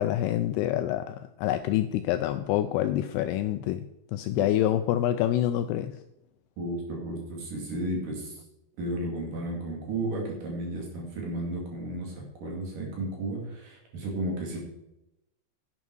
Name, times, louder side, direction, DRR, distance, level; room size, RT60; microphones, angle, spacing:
voice 1, 0.0-5.9, left 12 dB, 85° left, 10 dB, 2.4 m, -27 dB
voice 2, 6.6-8.4 8.8-14.6, right 1 dB, 55° right, -1 dB, 3.8 m, -33 dB
11.0 x 8.9 x 4.7 m, 0.88 s
omnidirectional pair, 5.1 m